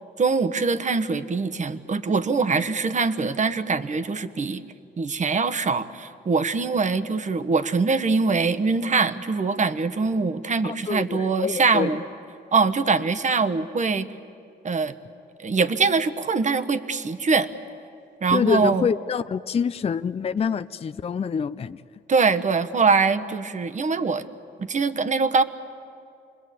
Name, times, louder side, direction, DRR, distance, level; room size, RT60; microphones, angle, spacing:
voice 1, 0.2-4.6 5.0-12.0 12.5-14.1 14.6-14.9 15.4-17.5 18.2-18.9 22.1-24.2 24.6-25.4, right 4 dB, 35° right, 11 dB, 1.2 m, -23 dB
voice 2, 10.6-12.0 18.3-21.8, left 6 dB, 30° left, 12 dB, 0.5 m, -26 dB
28.5 x 21.5 x 8.4 m, 2.5 s
cardioid pair, 90°, 20 cm